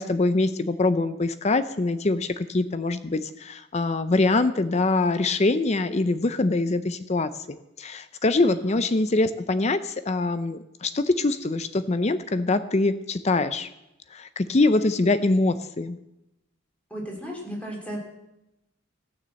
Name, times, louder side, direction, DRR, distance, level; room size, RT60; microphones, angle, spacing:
voice 1, 0.0-13.7 14.1-16.0, left 2 dB, 30° left, 12 dB, 0.5 m, -24 dB
voice 2, 8.4-8.8 16.9-18.0, equal, 5° left, -2 dB, 3.0 m, -35 dB
15.0 x 6.9 x 7.5 m, 0.90 s
head